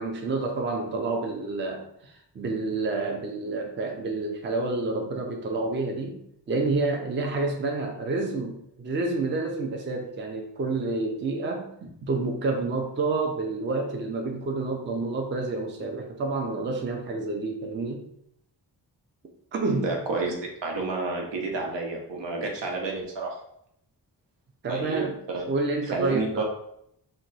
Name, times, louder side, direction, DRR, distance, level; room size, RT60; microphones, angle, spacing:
voice 1, 0.0-6.2 6.5-11.7 12.1-18.1 19.5-20.0 24.6-25.2 25.5-26.4, right 3 dB, 30° right, 3 dB, 0.4 m, -29 dB
voice 2, 19.8-20.4 20.6-23.4 24.7-25.4 25.9-26.4, right 3 dB, 85° right, 0 dB, 0.9 m, -30 dB
2.9 x 2.2 x 3.9 m, 0.73 s
wide cardioid pair, 180°, 42 cm